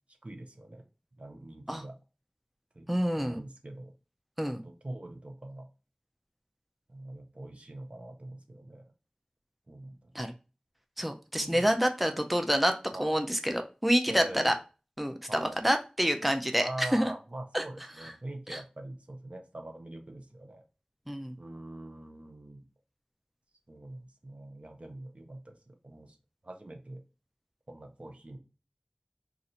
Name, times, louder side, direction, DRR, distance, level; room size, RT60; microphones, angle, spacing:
voice 1, 0.2-0.8 1.2-1.9 2.7-2.9 3.1-3.9 4.6-5.7 6.9-8.9 9.7-10.1 11.3-11.6 12.9-13.1 14.1-14.5 15.3-15.6 16.6-20.6 21.4-22.6 23.7-26.2 26.4-27.0 27.7-28.4, right 1 dB, 60° right, 4 dB, 0.6 m, -43 dB
voice 2, 2.9-3.4 4.4-4.6 10.1-10.3 11.0-12.7 13.0-14.5 15.0-17.1 17.5-17.6 18.0-18.1 18.5-18.6 21.1-21.4, equal, 5° right, 5 dB, 0.4 m, -28 dB
2.7 x 2.4 x 4.2 m, 0.33 s
wide cardioid pair, 45°, 2 cm